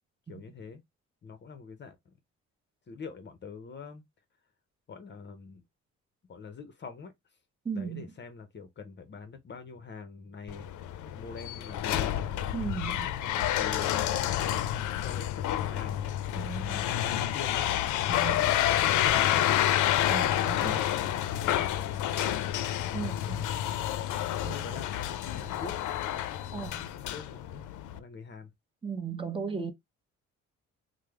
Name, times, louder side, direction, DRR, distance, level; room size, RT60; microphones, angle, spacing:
voice 1, 0.3-0.8 1.2-2.1 2.9-4.0 4.9-5.6 6.3-7.1 7.7-10.7 11.1-12.2 12.8-16.5 16.8-18.9 20.4-22.5 22.8-23.2 24.4-25.8 26.4-28.5, left 5 dB, 35° left, 0.6 m, -45 dB
voice 2, 7.6-8.1 12.5-13.1 16.3-16.9 18.1-18.4 20.1-20.8 22.9-23.4 24.4-24.6 26.5-26.9 28.8-29.7, right 6 dB, 15° right, 0.7 m, -36 dB
sound 1, 10.5-28.0, left 12 dB, 80° left, 0.5 m, -29 dB
3.1 x 2.0 x 3.3 m
cardioid pair, 90°, 30 cm